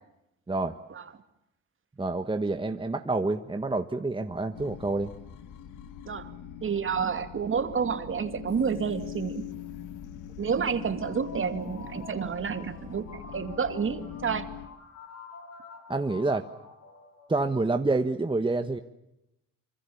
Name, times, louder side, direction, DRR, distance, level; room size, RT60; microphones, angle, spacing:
voice 1, 2.0-5.1 15.9-16.5 17.3-18.8, right 3 dB, 15° right, 7 dB, 1.4 m, -28 dB
sound 1, 4.5-14.7, left 10 dB, 85° left, 2.1 m, -42 dB
voice 2, 6.6-9.5 10.4-14.5, right 6 dB, 40° right, 9 dB, 2.5 m, -29 dB
sound 2, 10.8-17.6, left 5 dB, 60° left, 6.8 m, -48 dB
25.5 x 25.0 x 7.1 m, 0.87 s
cardioid pair, 90°, 30 cm